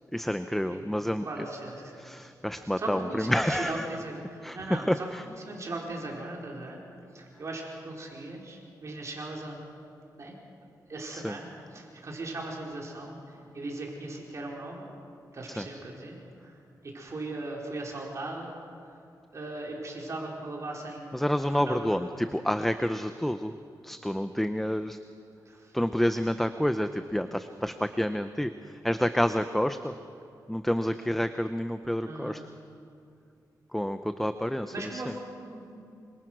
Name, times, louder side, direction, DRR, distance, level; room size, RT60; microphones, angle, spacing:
voice 1, 0.1-1.3 2.0-3.9 4.4-5.2 11.1-11.4 15.6-15.7 21.1-23.5 23.8-25.0 25.7-29.9 30.5-32.4 33.7-35.1, equal, 5° left, 9 dB, 0.7 m, -29 dB
voice 2, 1.2-2.0 2.8-6.8 7.1-9.6 10.1-10.3 10.9-14.9 15.3-16.6 16.9-18.5 18.9-19.0 19.3-21.1 21.5-21.9 25.5-25.7 32.0-32.5 34.7-35.8, right 2 dB, 45° right, -2 dB, 4.6 m, -38 dB
27.0 x 25.0 x 6.3 m, 2.5 s
wide cardioid pair, 135°, 7 cm